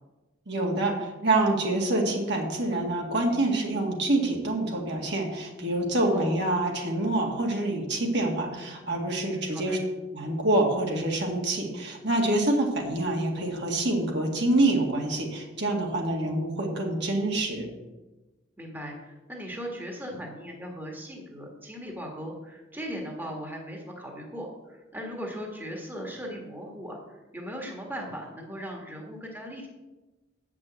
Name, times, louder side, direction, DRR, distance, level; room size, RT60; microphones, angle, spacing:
voice 1, 0.5-9.8 10.1-17.7, right 2 dB, 60° right, 0 dB, 2.0 m, -26 dB
voice 2, 9.3-9.8 18.6-29.7, equal, 10° right, 0 dB, 1.6 m, -38 dB
8.6 x 6.0 x 7.8 m, 1.1 s
head